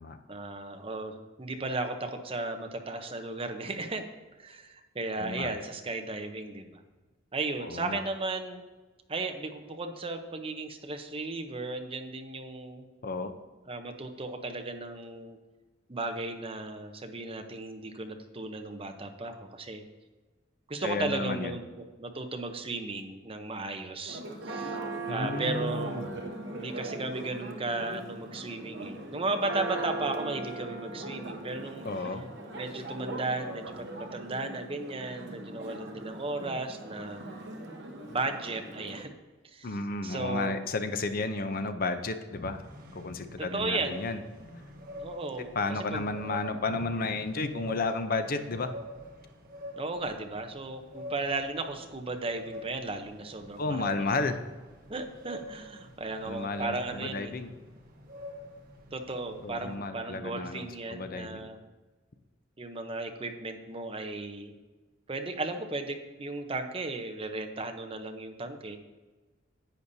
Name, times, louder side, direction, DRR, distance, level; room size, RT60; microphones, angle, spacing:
voice 1, 0.3-4.0 4.4-6.8 7.3-8.6 9.1-12.9 13.7-15.4 15.9-19.8 20.7-24.8 25.1-26.1 26.5-31.9 32.6-33.7 34.0-37.4 38.1-39.1 39.5-39.8 40.0-40.6 43.4-44.0 44.9-46.1 49.8-54.1 54.9-57.3 58.9-61.6 62.6-64.5 65.1-68.8, right 2 dB, 30° right, 6 dB, 0.8 m, -35 dB
voice 2, 5.2-5.5 7.6-8.0 13.0-13.3 20.8-21.6 25.1-26.2 31.8-32.2 39.6-42.6 42.9-44.2 45.6-48.7 53.6-54.4 56.2-57.5 59.4-61.5, left 3 dB, 50° left, 9 dB, 0.6 m, -32 dB
Church bell, 24.1-39.0, right 2 dB, 65° right, 1.1 m, -39 dB
sound 1, 42.3-59.8, left 1 dB, 45° right, 1.4 m, -46 dB
10.5 x 8.3 x 2.7 m, 1.3 s
head